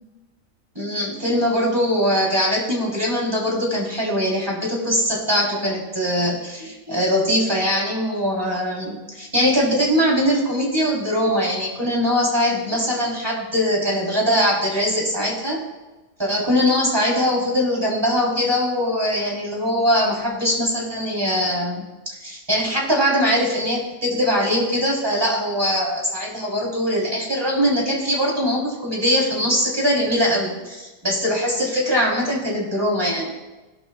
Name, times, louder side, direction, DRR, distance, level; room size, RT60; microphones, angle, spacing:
voice 1, 0.8-15.6 16.2-21.9 22.2-33.3, equal, 15° right, -3 dB, 3.6 m, -21 dB
19.5 x 11.5 x 2.4 m, 1.2 s
omnidirectional pair, 1.5 m